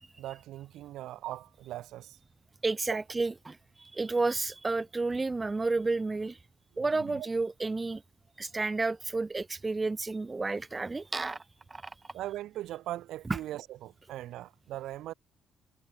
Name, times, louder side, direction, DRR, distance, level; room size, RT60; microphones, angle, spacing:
voice 1, 0.2-2.2 6.7-7.3 12.1-15.1, right 14 dB, 85° right, 0.9 m, -40 dB
voice 2, 2.6-6.4 6.8-8.0 8.4-11.4 11.7-11.8, right 3 dB, 25° right, 0.5 m, -31 dB
cardioid pair, 90°, 0 cm